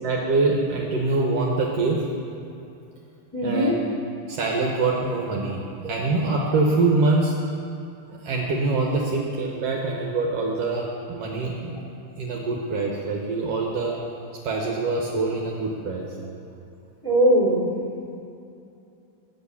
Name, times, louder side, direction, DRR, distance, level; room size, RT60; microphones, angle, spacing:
voice 1, 0.0-2.0 3.4-3.8 4.3-7.4 8.2-11.8 12.2-13.9 14.4-16.1, right 3 dB, 70° right, -1 dB, 1.7 m, -24 dB
voice 2, 3.3-3.8 17.0-17.7, equal, 15° left, -6 dB, 1.4 m, -20 dB
7.9 x 6.6 x 7.0 m, 2.7 s
omnidirectional pair, 3.4 m